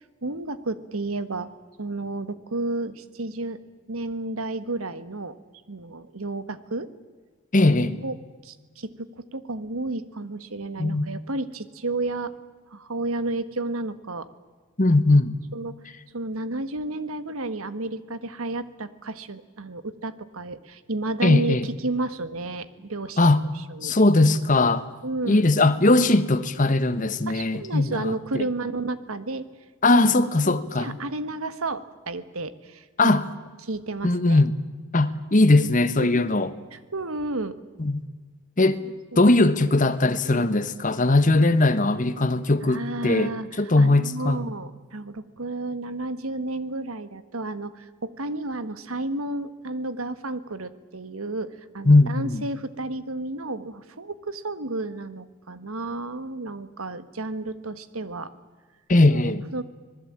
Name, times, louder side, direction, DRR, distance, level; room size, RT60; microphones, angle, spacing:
voice 1, 0.2-1.5 1.8-3.6 3.9-5.4 5.7-6.9 7.8-8.2 8.4-12.3 12.7-14.3 15.5-15.7 16.1-24.0 25.0-25.5 27.3-29.5 30.8-33.2 33.6-34.4 36.0-36.2 36.7-37.6 38.8-39.3 40.2-40.5 42.6-58.3 59.0-59.2 59.5-59.6, right 2 dB, 75° right, 1.5 m, -32 dB
voice 2, 7.5-8.0 10.8-11.1 14.8-15.3 21.2-21.6 23.2-23.4 23.8-24.9 25.3-28.4 29.8-31.0 33.0-33.3 34.0-34.5 34.9-36.5 37.8-38.0 38.6-38.8 39.2-44.4 51.8-52.4 58.9-59.4, left 2 dB, 35° left, 1.2 m, -20 dB
25.5 x 20.0 x 8.8 m
head